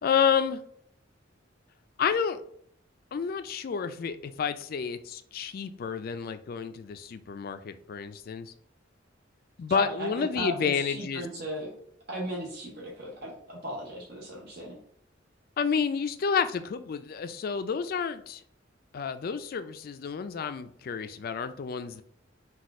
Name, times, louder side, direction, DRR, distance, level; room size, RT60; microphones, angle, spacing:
voice 1, 0.0-0.6 2.0-2.4 3.1-8.5 9.6-11.3 15.6-18.4 18.9-22.0, left 6 dB, 50° left, 10 dB, 0.3 m, -30 dB
voice 2, 9.7-11.7 12.1-14.8, equal, 55° right, -2 dB, 0.8 m, -36 dB
4.1 x 2.3 x 4.7 m, 0.65 s
head